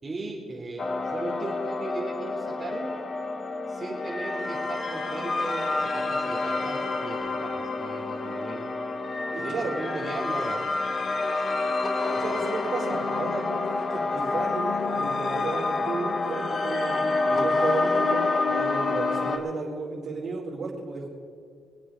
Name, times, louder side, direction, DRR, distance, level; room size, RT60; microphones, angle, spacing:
voice 1, 0.0-2.9 3.7-8.7 9.4-10.6, right 2 dB, 30° right, -5 dB, 3.3 m, -37 dB
sound 1, 0.8-19.4, left 3 dB, 40° left, 1.8 m, -28 dB
voice 2, 9.3-9.7 12.1-17.0 17.3-21.1, right 4 dB, 60° right, -5 dB, 4.6 m, -33 dB
25.5 x 8.5 x 5.2 m, 2.4 s
cardioid pair, 90°, 0 cm